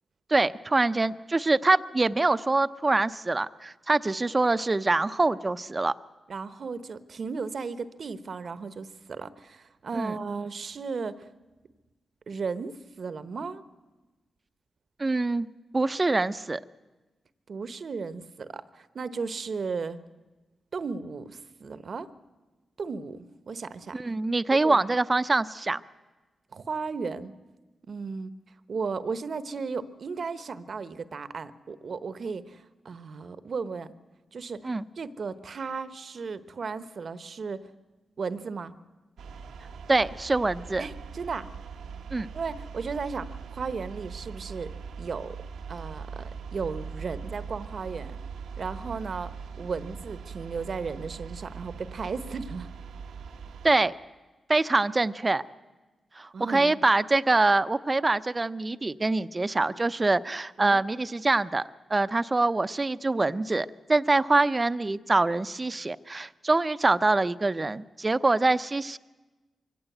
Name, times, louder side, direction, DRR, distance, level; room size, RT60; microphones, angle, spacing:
voice 1, 0.3-5.9 9.9-10.2 15.0-15.5 15.7-16.6 23.9-25.8 34.6-34.8 39.9-40.8 42.1-42.3 53.6-53.9 54.5-55.4 56.2-61.6 61.9-69.0, right 2 dB, 35° right, 14 dB, 0.7 m, -24 dB
voice 2, 6.3-11.3 12.3-13.6 17.5-20.0 20.7-22.1 22.8-24.0 24.5-24.8 26.5-27.3 27.8-28.3 28.7-33.9 34.3-37.7 38.2-38.7 40.8-41.5 42.3-44.7 45.0-45.4 45.7-48.2 48.6-49.3 49.6-52.7 56.3-56.8 60.6-60.8, right 5 dB, 65° right, 13 dB, 1.1 m, -35 dB
sound 1, 39.2-53.7, right 6 dB, 90° right, 1.1 m, -41 dB
23.0 x 16.5 x 8.1 m, 1.2 s
supercardioid pair, 45°, 0 cm